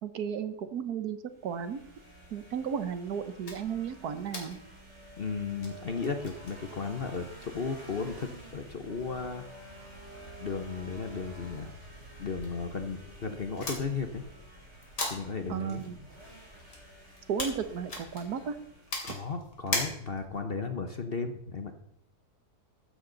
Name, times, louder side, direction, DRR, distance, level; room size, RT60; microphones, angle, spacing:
voice 1, 0.0-1.8 2.3-4.6 15.5-16.0 17.3-18.6, right 7 dB, 70° right, 11 dB, 1.5 m, -34 dB
sound 1, 1.3-19.2, right 1 dB, 40° right, 5.9 m, -50 dB
sound 2, 3.4-20.4, left 2 dB, 85° left, 3.6 m, -43 dB
voice 2, 5.2-9.5 10.4-11.7 12.2-14.2 15.1-15.8 19.0-21.7, left 4 dB, 40° left, 7 dB, 1.0 m, -35 dB
14.5 x 12.0 x 4.0 m, 0.77 s
omnidirectional pair, 1.8 m